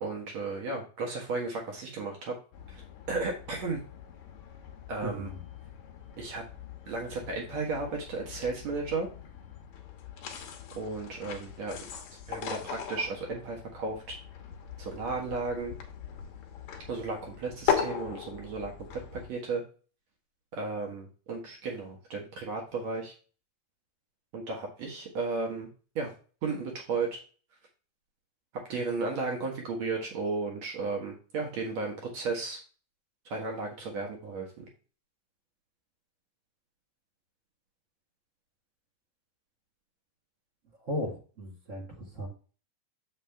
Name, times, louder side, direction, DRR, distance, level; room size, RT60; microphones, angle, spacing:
voice 1, 0.0-2.4 2.7-2.8 3.1-3.8 4.9-5.3 6.2-6.4 6.9-9.1 10.8-11.8 12.3-14.0 14.8-15.8 16.9-19.6 20.5-23.1 24.3-25.7 26.0-26.1 26.4-27.1 28.7-32.6 33.3-34.7, right 3 dB, 60° right, 0 dB, 2.3 m, -34 dB
sound 1, 2.5-19.3, left 8 dB, 65° left, 2.0 m, -39 dB
voice 2, 5.0-5.4 40.8-42.3, equal, 35° right, -2 dB, 1.3 m, -36 dB
7.1 x 5.6 x 3.4 m, 0.37 s
omnidirectional pair, 3.9 m